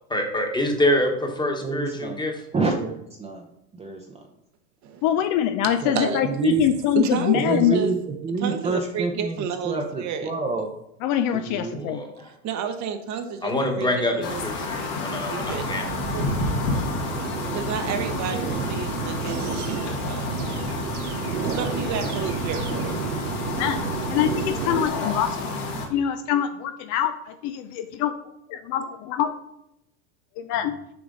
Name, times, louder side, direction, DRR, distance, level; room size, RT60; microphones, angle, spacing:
voice 1, 0.1-2.3 11.8-12.1 13.4-15.9, left 1 dB, 10° left, 3 dB, 1.3 m, -25 dB
voice 2, 1.6-2.2 2.5-3.5 3.7-4.1 5.8-6.0 6.2-6.7 7.3-10.7 11.5-11.9 18.2-18.4, right 4 dB, 15° right, 1 dB, 0.7 m, -27 dB
voice 3, 5.0-7.8 11.0-12.0 14.6-14.8 23.6-23.8 24.1-25.5 25.9-28.1 28.5-29.3 30.4-30.8, left 10 dB, 45° left, 9 dB, 0.5 m, -24 dB
voice 4, 6.9-7.9 8.4-10.3 12.2-13.5 13.8-15.7 16.1-16.3 17.5-20.7 21.4-22.9, right 7 dB, 40° right, 7 dB, 1.0 m, -31 dB
sound 1, 14.2-25.9, left 3 dB, 65° left, 2.1 m, -30 dB
sound 2, 15.4-24.9, right 6 dB, 90° right, 0.9 m, -31 dB
7.1 x 4.9 x 3.9 m, 0.81 s
hypercardioid pair, 110°, 43 cm